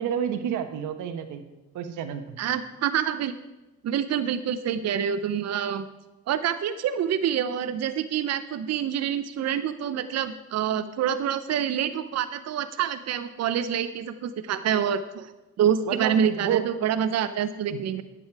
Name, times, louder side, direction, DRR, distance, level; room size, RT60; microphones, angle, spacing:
voice 1, 0.0-1.4 1.7-2.4 15.9-16.2 16.4-16.6 17.7-17.8, right 9 dB, 90° right, 8 dB, 1.1 m, -29 dB
voice 2, 2.4-3.3 3.8-5.8 6.3-15.3 15.6-18.0, right 9 dB, 60° right, 11 dB, 0.6 m, -26 dB
10.5 x 8.6 x 4.7 m, 1.0 s
cardioid pair, 90°, 30 cm